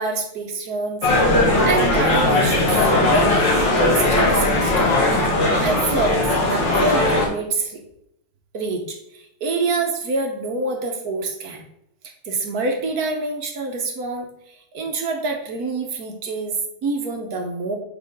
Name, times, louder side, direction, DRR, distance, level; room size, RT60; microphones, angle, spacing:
voice 1, 0.0-1.4 1.7-5.0 5.6-7.8 8.5-11.6 12.2-17.8, right 3 dB, 55° right, 2 dB, 1.2 m, -26 dB
sound 1, 1.0-7.3, left 2 dB, 60° left, 1.9 m, -18 dB
7.2 x 5.0 x 3.6 m, 0.77 s
omnidirectional pair, 2.3 m